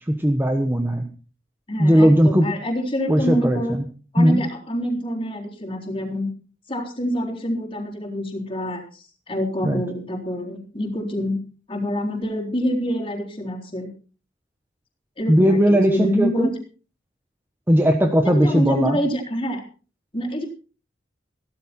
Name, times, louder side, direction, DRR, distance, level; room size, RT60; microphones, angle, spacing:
voice 1, 0.1-1.1 1.8-2.5 3.1-3.6 4.2-4.4 9.6-9.8 15.3-16.5 17.7-19.0, equal, 10° right, 5 dB, 1.2 m, -17 dB
voice 2, 1.7-3.8 4.1-6.3 6.7-11.4 11.7-13.9 15.2-16.5 18.2-19.6 20.1-20.5, equal, 30° left, 1 dB, 3.8 m, -26 dB
16.0 x 13.5 x 4.3 m, 0.37 s
head